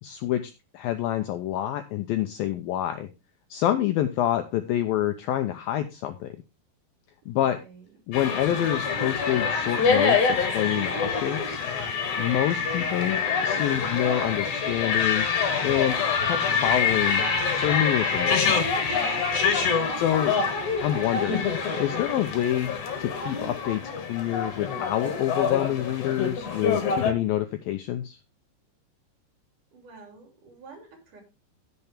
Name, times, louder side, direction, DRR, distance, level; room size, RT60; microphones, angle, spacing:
voice 1, 0.0-3.1 3.5-6.3 7.3-7.6 8.1-11.6 12.2-15.3 15.6-16.0 16.2-17.2 17.6-18.5 20.0-20.4 20.8-21.5 21.8-22.7 23.0-28.2, left 12 dB, 85° left, 8 dB, 2.1 m, -27 dB
voice 2, 7.2-7.8 19.4-20.1 29.7-31.2, right 4 dB, 50° right, 3 dB, 4.4 m, -49 dB
sound 1, 8.1-27.1, left 5 dB, 50° left, 3.0 m, -26 dB
15.0 x 6.9 x 3.5 m, 0.27 s
omnidirectional pair, 5.0 m